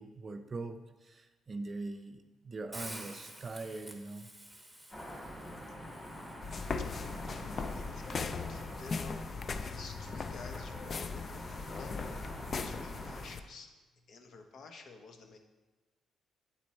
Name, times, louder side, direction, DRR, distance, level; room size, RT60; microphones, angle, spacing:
voice 1, 0.0-4.3, right 3 dB, 40° right, 8 dB, 0.5 m, -42 dB
Hiss, 2.7-8.8, right 1 dB, ahead, 1.0 m, -51 dB
sound 1, 4.9-13.2, equal, 15° left, 2.5 m, -46 dB
voice 2, 5.5-13.7 14.1-15.4, left 3 dB, 65° left, 5 dB, 0.9 m, -52 dB
sound 2, 6.4-13.4, left 4 dB, 45° left, 0.3 m, -39 dB
8.5 x 4.4 x 4.2 m, 1.2 s
cardioid pair, 90°, 0 cm